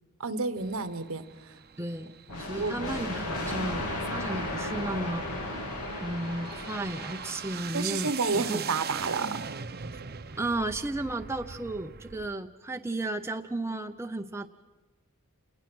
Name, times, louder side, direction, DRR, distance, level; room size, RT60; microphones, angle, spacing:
voice 1, 0.2-1.2 2.6-2.9 7.7-9.6, right 4 dB, 65° right, 11 dB, 1.1 m, -30 dB
sound 1, 0.6-12.3, right 6 dB, 45° right, 0.8 m, -42 dB
voice 2, 1.8-2.1 2.4-5.3 6.0-8.7 10.4-14.5, right 2 dB, 10° right, 5 dB, 0.6 m, -34 dB
sound 2, 2.3-7.9, left 1 dB, 80° left, 3.4 m, -35 dB
28.0 x 19.5 x 6.2 m, 1.2 s
head